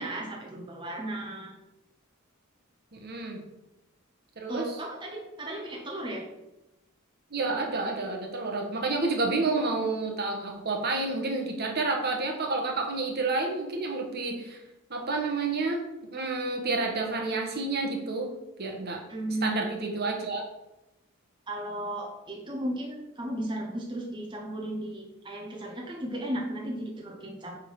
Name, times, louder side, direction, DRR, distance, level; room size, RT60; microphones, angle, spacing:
voice 1, 0.0-1.5 4.5-6.2 19.1-19.7 21.5-27.6, right 1 dB, 20° right, -1 dB, 1.1 m, -35 dB
voice 2, 2.9-3.4 4.4-4.7 7.3-14.6 14.9-18.3 18.6-19.0 19.4-20.4, right 3 dB, 50° right, 2 dB, 1.2 m, -29 dB
9.1 x 3.8 x 4.7 m, 0.96 s
head